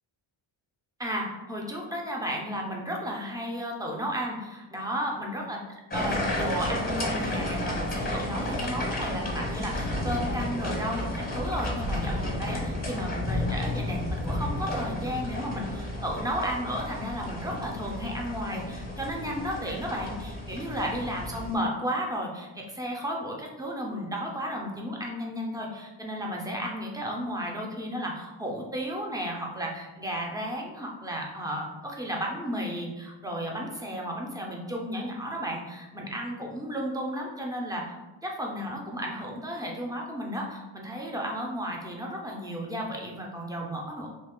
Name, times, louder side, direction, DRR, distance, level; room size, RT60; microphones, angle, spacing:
voice 1, 1.0-5.6 5.9-37.9 38.2-44.1, equal, 10° right, -1 dB, 0.3 m, -33 dB
sound 1, 5.9-21.5, left 1 dB, 20° left, 0.7 m, -32 dB
3.1 x 2.7 x 3.6 m, 1.1 s
wide cardioid pair, 170°, 49 cm